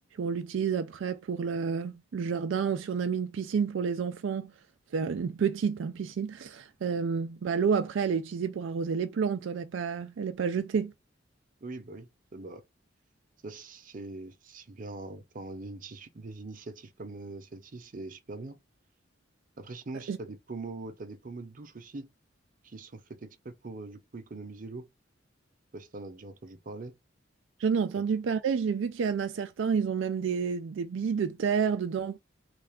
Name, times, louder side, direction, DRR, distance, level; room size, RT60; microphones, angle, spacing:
voice 1, 0.2-4.5 4.9-10.9 20.1-20.2 27.6-32.2, right 6 dB, 85° right, 0.4 m, -29 dB
voice 2, 11.6-12.6 13.4-18.6 19.6-22.1 22.6-24.9 25.7-27.0 28.0-28.1, right 3 dB, 45° right, 0.7 m, -42 dB
3.2 x 2.4 x 3.5 m
head